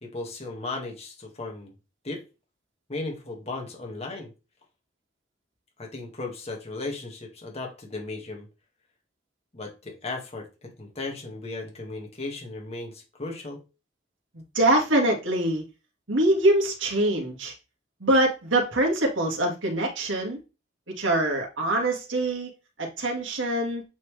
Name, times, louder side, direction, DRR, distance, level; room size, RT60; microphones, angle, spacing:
voice 1, 0.0-1.7 2.0-2.2 2.9-4.3 5.8-8.5 9.5-13.6, left 2 dB, 35° left, 0 dB, 2.0 m, -36 dB
voice 2, 14.5-15.6 16.1-17.5 18.0-20.4 21.0-22.5 22.8-23.8, right 1 dB, 80° right, 0 dB, 2.1 m, -24 dB
8.3 x 4.3 x 3.4 m, 0.30 s
head